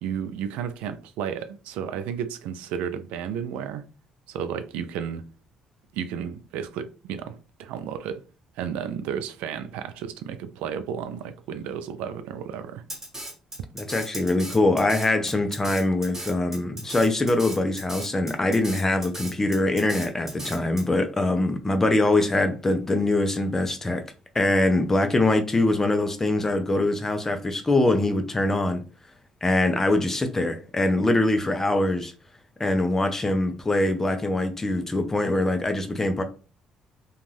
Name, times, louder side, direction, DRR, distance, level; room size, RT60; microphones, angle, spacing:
voice 1, 0.0-3.9 4.3-5.3 5.9-8.2 8.6-12.9, right 8 dB, 90° right, 0.4 m, -33 dB
Drum kit, 12.9-20.8, right 1 dB, 15° right, 1.5 m, -37 dB
voice 2, 13.7-24.0 24.3-28.8 29.4-32.1 32.6-36.2, left 2 dB, 20° left, 0.6 m, -23 dB
2.5 x 2.3 x 3.2 m
cardioid pair, 95°, 2 cm